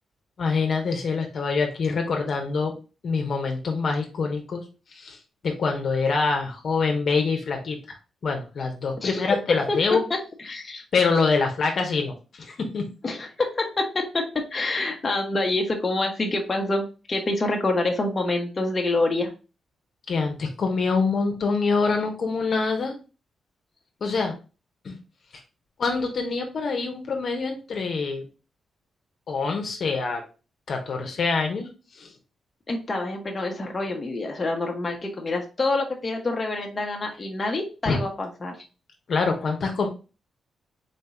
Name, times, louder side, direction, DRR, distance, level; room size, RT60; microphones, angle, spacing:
voice 1, 0.4-2.8 3.0-4.6 4.9-5.2 5.4-8.0 8.2-10.0 10.9-12.9 20.1-22.9 24.0-24.3 24.8-25.0 25.8-28.2 29.3-30.2 30.7-31.7 31.9-32.1 37.8-38.0 39.1-39.9, left 4 dB, 60° left, 3 dB, 1.0 m, -25 dB
voice 2, 10.1-10.8 13.0-19.3 32.7-38.6, left 2 dB, 35° left, 1 dB, 0.9 m, -27 dB
4.1 x 2.7 x 3.6 m, 0.32 s
cardioid pair, 80°, 0 cm